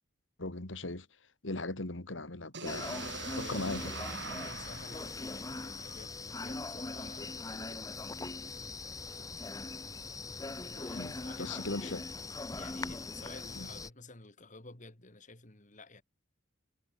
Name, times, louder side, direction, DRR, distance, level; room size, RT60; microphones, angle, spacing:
voice 1, 0.4-1.1 1.4-2.9 3.4-4.0 10.9-12.0 13.6-13.7, left 2 dB, 85° left, 2.5 m, -38 dB
sound 1, 2.5-6.4, right 4 dB, 65° right, 3.4 m, -44 dB
sound 2, 2.6-13.9, left 3 dB, 20° left, 0.8 m, -41 dB
voice 2, 3.4-4.0 4.3-7.8 10.6-12.0 12.6-16.0, left 3 dB, 40° left, 2.9 m, -52 dB
head